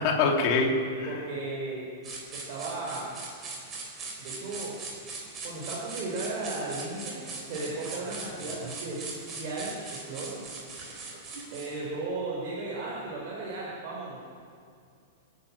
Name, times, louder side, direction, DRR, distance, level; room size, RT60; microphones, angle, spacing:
voice 1, 0.0-1.2, left 3 dB, 35° left, 1 dB, 3.0 m, -25 dB
voice 2, 1.1-1.9 2.3-3.1 4.2-4.8 5.4-10.3 11.5-14.2, right 3 dB, 35° right, -5 dB, 5.4 m, -35 dB
sound 1, 2.0-11.8, right 3 dB, 15° right, 4.1 m, -40 dB
28.0 x 11.5 x 9.0 m, 2.3 s
supercardioid pair, 175°, 0 cm